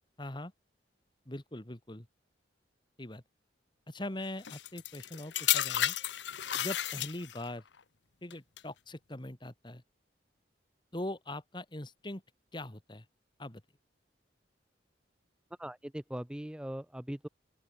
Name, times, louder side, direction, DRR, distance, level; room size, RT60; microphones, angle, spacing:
voice 1, 0.2-0.5 1.3-2.1 3.0-3.2 3.9-6.0 6.6-7.6 8.2-9.8 10.9-12.2 12.5-13.1 13.4-13.6, left 1 dB, 25° left, 1.8 m, -41 dB
sound 1, 4.4-7.5 8.3-8.6, left 12 dB, 75° left, 0.9 m, -32 dB
voice 2, 15.6-17.3, equal, 5° right, 0.4 m, -40 dB
open air
head